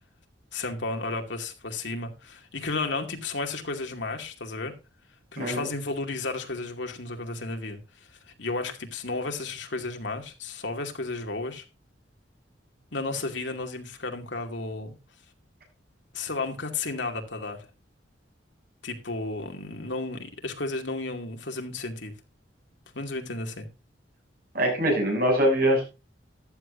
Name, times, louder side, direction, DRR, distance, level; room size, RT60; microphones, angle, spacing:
voice 1, 0.5-4.7 5.3-11.6 12.9-14.9 16.1-17.6 18.8-22.1 22.9-23.7, left 3 dB, 70° left, 2.5 m, -33 dB
voice 2, 5.4-5.7 24.5-25.8, right 1 dB, 50° right, 7.2 m, -23 dB
14.5 x 10.5 x 2.6 m
head